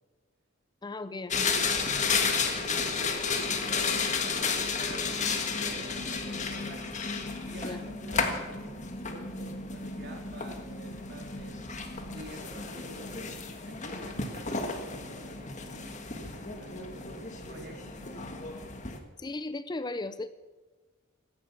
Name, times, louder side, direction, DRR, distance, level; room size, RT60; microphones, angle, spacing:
voice 1, 0.8-1.5 7.6-7.8 19.2-20.3, left 2 dB, 20° left, 13 dB, 0.5 m, -36 dB
sound 1, 1.3-19.0, left 4 dB, 35° left, 1.6 m, -32 dB
voice 2, 2.2-6.9 7.5-11.6 12.1-18.3, right 1 dB, 50° right, 2 dB, 3.2 m, -48 dB
16.0 x 12.5 x 6.9 m, 1.3 s
head